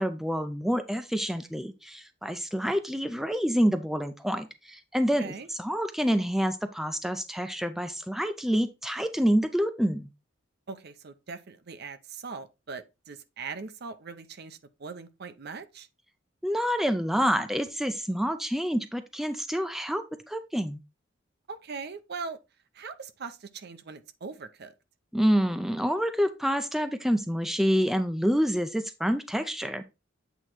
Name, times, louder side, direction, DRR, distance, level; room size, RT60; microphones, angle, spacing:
voice 1, 0.0-10.1 16.4-20.8 25.1-29.9, equal, ahead, 0.5 m, -27 dB
voice 2, 10.7-15.9 21.5-22.4 22.7-24.7, right 5 dB, 55° right, 0.7 m, -40 dB
8.1 x 3.0 x 4.4 m
head